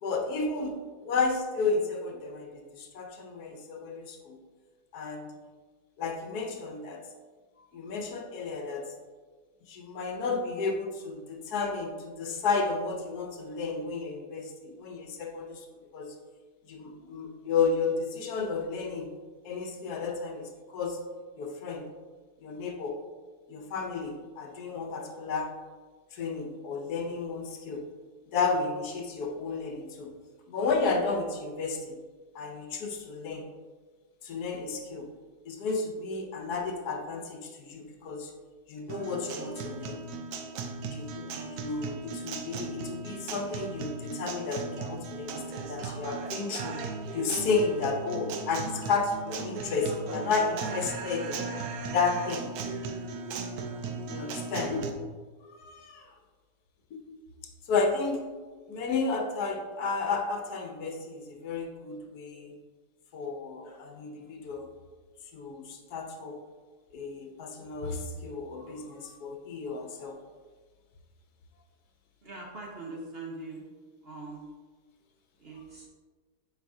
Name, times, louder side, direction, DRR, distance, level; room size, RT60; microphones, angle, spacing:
voice 1, 0.0-4.4 4.9-5.3 6.0-7.0 7.7-8.9 9.7-15.6 15.9-16.1 16.7-19.1 19.4-21.0 21.4-21.9 22.4-23.0 23.5-25.5 26.1-27.8 28.3-30.1 30.5-32.0 32.3-33.5 34.2-35.1 35.5-38.3 38.7-40.0 40.9-46.8 47.1-51.6 51.9-52.5 54.1-54.8 55.5-56.1 56.9-57.0 57.7-58.3 58.7-62.6 63.1-64.7 65.3-66.4 66.9-70.2, left 4 dB, 70° left, 3 dB, 1.3 m, -32 dB
Guitar, 38.9-54.9, right 4 dB, 75° right, 1.1 m, -37 dB
voice 2, 72.2-73.7 74.0-74.4 75.4-75.9, right 3 dB, 45° right, -1 dB, 0.9 m, -42 dB
8.1 x 4.7 x 2.7 m, 1.4 s
omnidirectional pair, 1.7 m